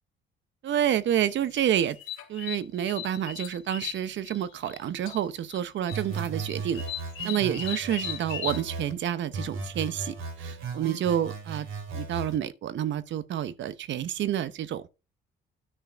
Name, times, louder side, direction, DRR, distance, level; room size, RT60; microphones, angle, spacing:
voice 1, 0.6-2.0 2.3-6.8 7.2-11.7 11.9-14.9, right 10 dB, 70° right, 0.8 m, -29 dB
sound 1, 1.5-4.8 5.1-5.6 5.9-8.6, left 10 dB, 90° left, 1.9 m, -37 dB
sound 2, 5.9-8.9 9.3-12.3, right 4 dB, 85° right, 2.6 m, -36 dB
9.8 x 4.6 x 5.0 m
cardioid pair, 90°, 20 cm